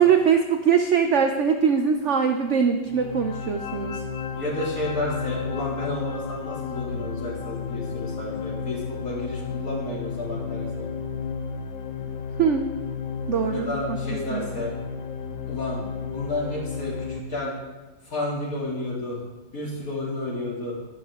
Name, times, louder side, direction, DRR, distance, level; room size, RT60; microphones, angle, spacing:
voice 1, 0.0-4.0 12.4-12.7 13.3-14.0 14.3-14.5, right 7 dB, 65° right, 5 dB, 0.7 m, -22 dB
sound 1, 2.9-17.2, left 6 dB, 80° left, 1.5 m, -33 dB
voice 2, 4.4-10.9 13.5-14.7 15.5-17.5 18.0-19.2 19.5-20.7, left 1 dB, 50° left, -6 dB, 3.5 m, -31 dB
11.0 x 10.5 x 3.6 m, 1.2 s
omnidirectional pair, 1.9 m